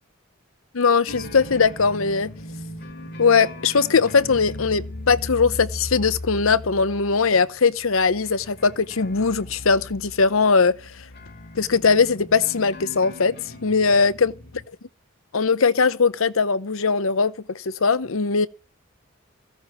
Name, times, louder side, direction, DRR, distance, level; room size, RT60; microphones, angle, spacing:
voice 1, 0.7-2.3 3.2-10.8 11.6-13.4 13.6-14.3 15.3-18.5, left 5 dB, 75° left, 0.8 m, -20 dB
sound 1, 1.1-14.6, left 1 dB, 50° left, 2.1 m, -38 dB
16.0 x 6.6 x 7.3 m
head